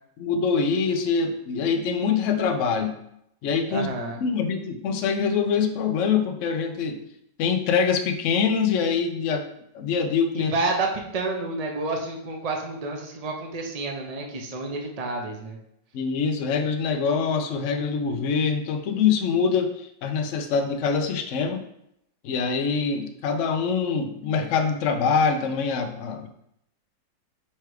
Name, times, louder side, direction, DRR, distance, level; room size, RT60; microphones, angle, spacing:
voice 1, 0.2-3.0 3.4-3.9 4.2-7.0 7.4-9.5 9.7-10.5 15.9-21.6 22.2-26.3, left 5 dB, 65° left, 5 dB, 0.7 m, -24 dB
voice 2, 3.7-4.2 10.4-15.6, right 3 dB, 85° right, 1 dB, 0.3 m, -29 dB
4.6 x 4.5 x 4.8 m, 0.76 s
omnidirectional pair, 2.0 m